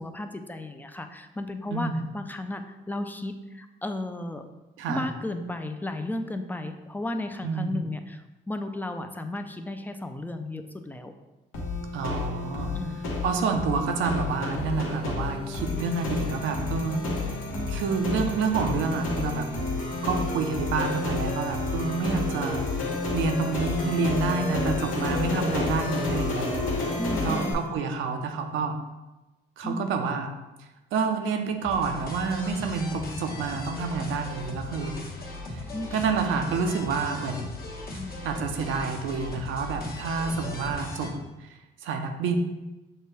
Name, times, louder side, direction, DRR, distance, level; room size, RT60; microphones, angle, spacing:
voice 1, 0.0-4.4 4.9-11.1 12.7-13.1 17.5-17.8 27.0-27.6 29.6-29.9 35.7-36.0 37.9-38.4, left 1 dB, 10° left, 7 dB, 0.3 m, -34 dB
voice 2, 1.7-2.0 4.8-5.1 7.4-7.8 11.9-12.7 13.2-17.0 17.7-19.5 20.0-26.5 27.2-28.8 29.6-30.3 30.9-35.0 35.5-35.6 35.9-37.5 38.2-41.1 41.4-42.4, right 4 dB, 85° right, 5 dB, 0.6 m, -28 dB
sound 1, 11.5-27.5, left 2 dB, 90° left, 0.9 m, -30 dB
sound 2, 31.6-41.1, left 2 dB, 45° left, 1.0 m, -38 dB
6.5 x 2.2 x 3.2 m, 1.1 s
cardioid pair, 90°, 20 cm